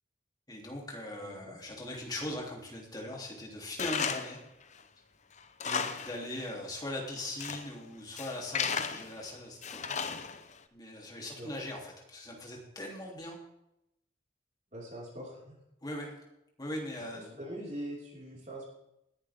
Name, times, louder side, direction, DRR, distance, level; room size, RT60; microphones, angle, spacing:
voice 1, 0.5-4.4 5.6-9.9 10.7-13.4 15.8-16.2 16.6-17.4, left 1 dB, 20° left, -1 dB, 3.3 m, -40 dB
voice 2, 1.2-1.6 5.6-5.9 11.4-11.5 14.7-15.6 17.4-18.7, right 1 dB, 40° right, -4 dB, 5.3 m, -43 dB
Tools, 3.8-4.4 4.8-4.9 5.4-6.2 6.5-6.6 7.2-7.7 8.2-9.2 9.6-10.5, left 6 dB, 40° left, 0.9 m, -34 dB
20.0 x 10.5 x 3.7 m, 0.84 s
head